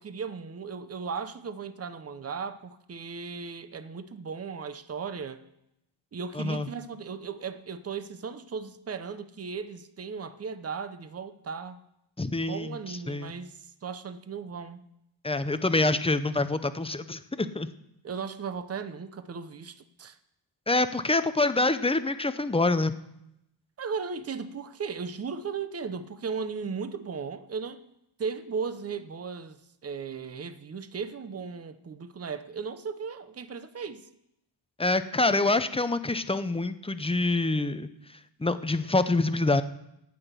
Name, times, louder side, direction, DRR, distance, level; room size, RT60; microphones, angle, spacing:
voice 1, 0.0-5.4 6.1-11.8 12.5-14.8 18.0-20.2 23.8-27.8 28.2-34.1, right 5 dB, 30° right, 0.7 m, -36 dB
voice 2, 6.3-6.7 12.2-12.8 13.1-13.3 15.2-17.7 20.7-22.9 34.8-37.9 38.4-39.6, left 2 dB, 10° left, 0.6 m, -26 dB
17.0 x 5.9 x 8.1 m
wide cardioid pair, 130°, 49 cm